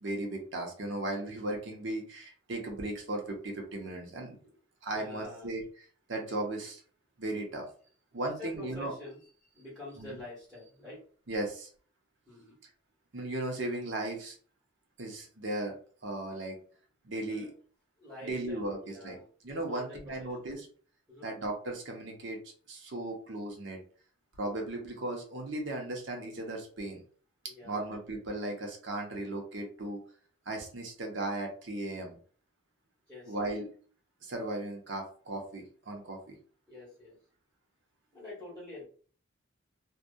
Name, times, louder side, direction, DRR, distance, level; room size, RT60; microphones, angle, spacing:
voice 1, 0.0-4.4 4.8-5.6 6.1-6.8 7.2-7.7 8.1-8.9 10.0-10.2 11.3-11.7 13.1-14.3 15.0-15.7 16.0-16.6 17.0-17.5 18.2-19.2 19.4-20.7 21.2-22.4 22.7-23.8 24.4-27.0 27.6-30.0 30.5-32.2 33.3-33.7 34.2-36.4, right 2 dB, 65° right, 1 dB, 0.8 m, -36 dB
voice 2, 4.9-5.5 8.4-11.0 12.2-12.6 17.2-17.5 18.0-19.3 19.7-20.5 21.1-21.3 27.5-27.9 33.1-33.5 36.7-37.2 38.1-38.8, left 2 dB, ahead, -9 dB, 1.3 m, -47 dB
2.7 x 2.3 x 2.2 m, 0.43 s
head